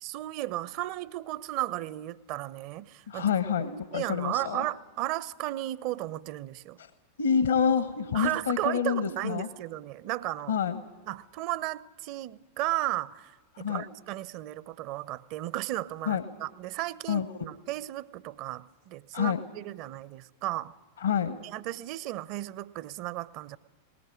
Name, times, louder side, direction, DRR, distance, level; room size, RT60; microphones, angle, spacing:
voice 1, 0.0-3.3 3.9-6.8 8.1-10.5 11.1-13.3 13.6-20.7 21.4-23.6, right 15 dB, 45° right, 0.7 m, -34 dB
voice 2, 3.1-4.6 6.8-6.9 7.2-9.5 10.5-10.8 13.5-13.8 16.1-16.2 17.1-17.3 19.1-19.4 21.0-21.4, left 7 dB, 65° left, 1.1 m, -27 dB
20.0 x 19.0 x 9.7 m
figure-of-eight pair, 90°, 0 cm